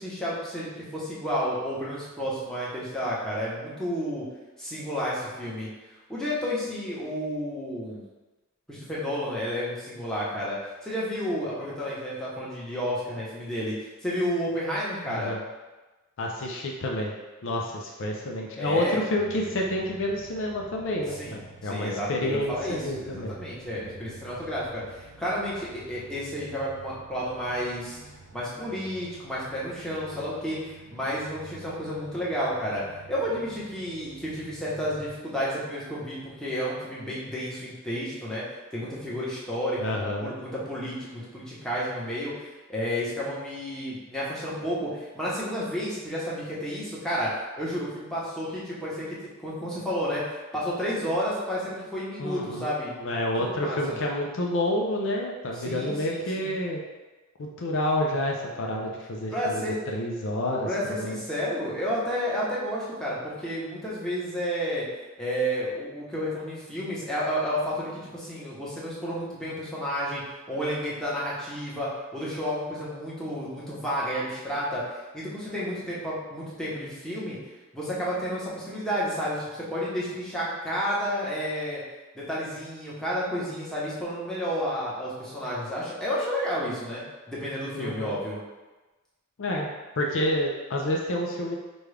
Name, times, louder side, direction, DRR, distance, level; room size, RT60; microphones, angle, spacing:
voice 1, 0.0-4.3 4.6-5.7 6.1-8.0 8.7-15.3 18.6-19.0 21.2-28.0 28.3-32.8 33.1-38.4 38.7-42.3 42.7-49.0 49.4-53.1 53.4-54.0 55.5-56.5 59.3-59.8 60.6-64.9 65.2-77.4 77.7-81.8 82.1-87.0 87.3-88.4, equal, 5° left, -8 dB, 0.9 m, -31 dB
voice 2, 15.1-15.4 16.2-17.1 17.4-23.3 39.8-40.3 52.2-52.7 53.0-56.8 57.4-60.7 61.0-61.2 87.7-88.2 89.4-89.7 90.0-91.6, left 1 dB, 60° left, -1 dB, 0.5 m, -29 dB
sound 1, 19.2-35.1, right 3 dB, 70° right, 0.5 m, -49 dB
5.0 x 2.3 x 3.3 m, 1.2 s
head